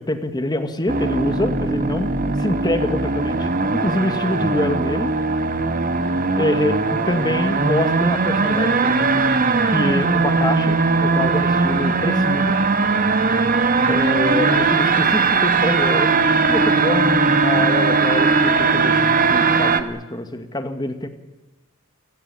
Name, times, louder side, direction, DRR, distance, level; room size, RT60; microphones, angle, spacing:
voice 1, 0.0-2.1 2.4-5.1 6.4-9.3 9.7-12.6 13.9-16.1 16.5-21.1, left 1 dB, 20° left, 8 dB, 2.1 m, -25 dB
sound 1, 0.9-19.8, right 4 dB, 45° right, 1.5 m, -19 dB
28.5 x 17.5 x 8.7 m, 1.1 s
head